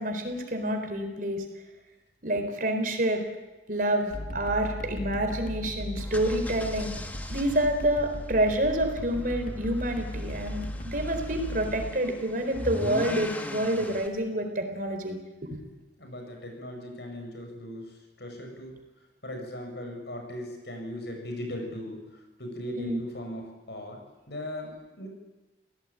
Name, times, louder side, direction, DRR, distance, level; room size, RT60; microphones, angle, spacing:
voice 1, 0.0-1.4 2.2-3.2 3.7-7.0 7.3-15.2 15.5-15.6 22.8-23.0, right 1 dB, 50° right, 6 dB, 4.2 m, -28 dB
sound 1, 4.1-11.9, left 1 dB, 50° left, 2.1 m, -37 dB
sound 2, 6.0-14.1, left 1 dB, 10° left, 1.9 m, -41 dB
voice 2, 16.0-18.8 19.2-24.0 24.3-25.1, left 1 dB, 70° left, 3 dB, 7.5 m, -38 dB
28.5 x 17.5 x 9.0 m, 1.1 s
head